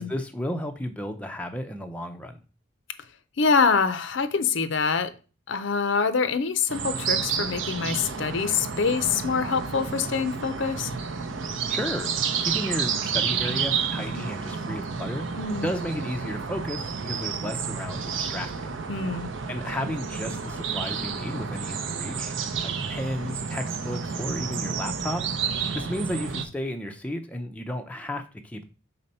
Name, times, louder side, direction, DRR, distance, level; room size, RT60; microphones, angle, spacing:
voice 1, 0.0-2.4 11.7-12.1 12.4-15.3 15.6-18.7 19.5-22.3 22.6-25.3 25.8-28.7, equal, 5° left, 0.5 m, -33 dB
voice 2, 3.4-5.1 5.5-10.9 15.4-15.7 18.9-19.3, left 5 dB, 60° left, 0.6 m, -25 dB
sound 1, 6.7-26.4, right 6 dB, 65° right, 0.6 m, -30 dB
4.2 x 4.2 x 5.3 m
head